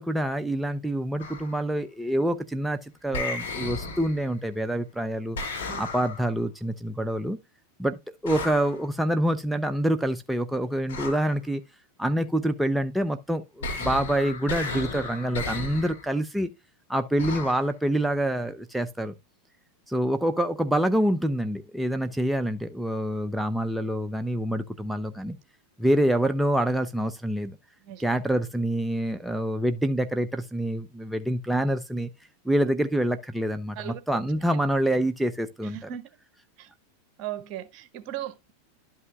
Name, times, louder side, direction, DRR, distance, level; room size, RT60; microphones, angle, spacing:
voice 1, 0.0-5.4 5.8-7.4 7.8-8.0 8.2-11.6 12.0-16.5 16.9-19.1 19.9-25.4 25.8-27.6 28.0-32.1 32.4-35.8, right 1 dB, 5° right, 0.6 m, -26 dB
sound 1, 1.2-1.6 3.1-4.4 5.4-6.4 8.3-8.8 10.9-11.4 13.6-16.1 17.2-17.7, left 3 dB, 75° left, 2.5 m, -34 dB
voice 2, 35.6-36.0 36.6-36.7 37.2-38.5, right 12 dB, 50° right, 1.4 m, -37 dB
12.0 x 5.6 x 2.3 m
hypercardioid pair, 105°, 0 cm